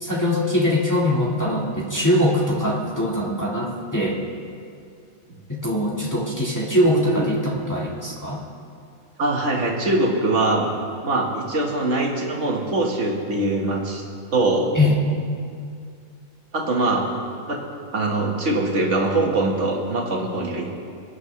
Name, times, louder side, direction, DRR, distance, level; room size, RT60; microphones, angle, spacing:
voice 1, 0.0-4.2 5.5-8.4 14.8-15.0, left 1 dB, 15° left, -5 dB, 1.6 m, -22 dB
voice 2, 6.8-7.3 9.2-10.7 11.0-14.0 14.3-14.7 16.5-17.1 17.5-17.6 17.9-20.7, right 2 dB, 55° right, 0 dB, 1.8 m, -22 dB
21.5 x 9.7 x 3.2 m, 2.3 s
omnidirectional pair, 1.5 m